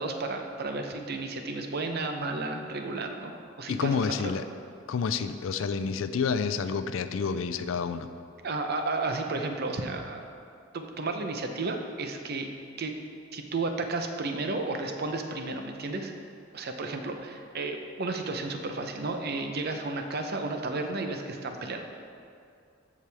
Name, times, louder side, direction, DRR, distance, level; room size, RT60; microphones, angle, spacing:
voice 1, 0.0-4.3 8.4-10.2 10.7-12.5 12.8-12.9 13.3-16.1 16.5-21.8, right 3 dB, 55° right, 5 dB, 0.7 m, -32 dB
voice 2, 3.7-4.4 4.9-8.1, left 5 dB, 75° left, 10 dB, 0.4 m, -29 dB
14.0 x 4.8 x 3.4 m, 2.4 s
head